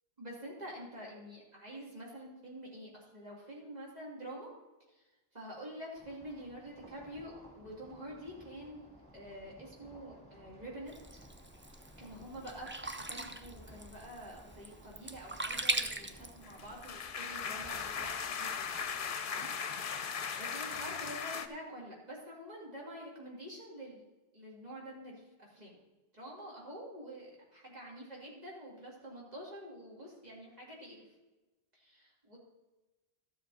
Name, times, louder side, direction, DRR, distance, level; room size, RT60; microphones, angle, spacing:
voice 1, 0.2-4.5 4.9-5.0 5.3-8.9 9.1-11.2 12.0-18.8 19.2-19.5 19.8-24.0 24.3-25.8 26.1-31.1 31.7-32.4, equal, 40° right, -4 dB, 2.9 m, -47 dB
sound 1, 6.0-19.1, equal, 5° left, 2.2 m, -58 dB
Sink (filling or washing), 10.9-17.0, right 2 dB, 20° right, 0.3 m, -40 dB
sound 2, 16.4-21.5, left 6 dB, 60° left, 0.8 m, -38 dB
13.0 x 7.4 x 4.2 m, 1.1 s
omnidirectional pair, 1.1 m